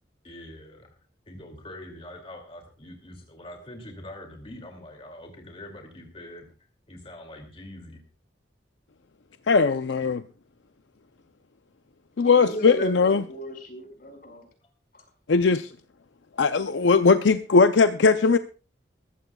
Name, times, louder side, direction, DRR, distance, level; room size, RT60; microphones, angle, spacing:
voice 1, 0.2-1.0 1.3-6.5 6.9-8.0 10.0-10.1 14.6-14.7, left 1 dB, 30° left, 2.5 m, -44 dB
voice 2, 9.5-10.2 12.2-13.2 15.3-15.7 16.4-18.4, left 4 dB, 80° left, 0.6 m, -19 dB
voice 3, 12.2-14.5 14.9-15.0, equal, 50° left, 5.2 m, -36 dB
21.0 x 15.0 x 2.3 m
head